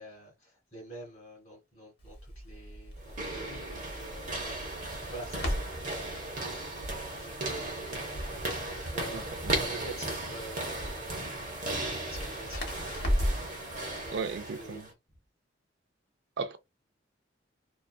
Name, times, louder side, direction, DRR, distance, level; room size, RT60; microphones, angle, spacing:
voice 1, 0.0-4.8 5.1-6.6 7.2-7.8 8.2-8.3 8.6-11.1 11.6-14.3 14.6-14.8, right 1 dB, 30° left, 1.2 m, -48 dB
Crackle, 2.0-13.5, equal, 55° left, 0.9 m, -37 dB
sound 1, 3.0-14.9, right 2 dB, 40° right, 0.8 m, -36 dB
voice 2, 9.1-9.6 14.1-14.9 16.4-16.6, right 4 dB, 65° right, 0.4 m, -36 dB
2.5 x 2.3 x 2.2 m
head